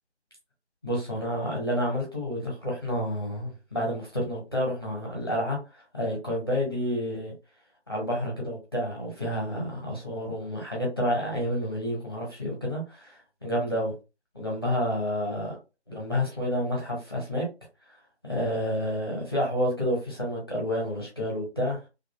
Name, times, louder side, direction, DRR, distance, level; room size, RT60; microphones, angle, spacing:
voice 1, 0.8-7.3 7.9-13.9 14.3-15.6 15.9-17.4 18.2-21.8, equal, 20° left, 0.7 m, -29 dB
2.5 x 2.4 x 2.3 m
figure-of-eight pair, 160°, 34 cm